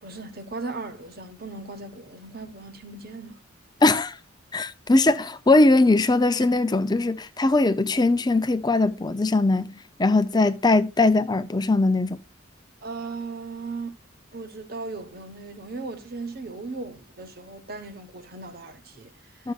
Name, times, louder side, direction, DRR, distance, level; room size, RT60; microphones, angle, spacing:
voice 1, 0.0-3.4 12.8-14.0 14.3-19.5, right 3 dB, 50° right, 1.2 m, -37 dB
voice 2, 3.8-4.2 4.5-12.2 19.4-19.5, left 2 dB, 20° left, 0.5 m, -20 dB
13.0 x 6.6 x 2.4 m
head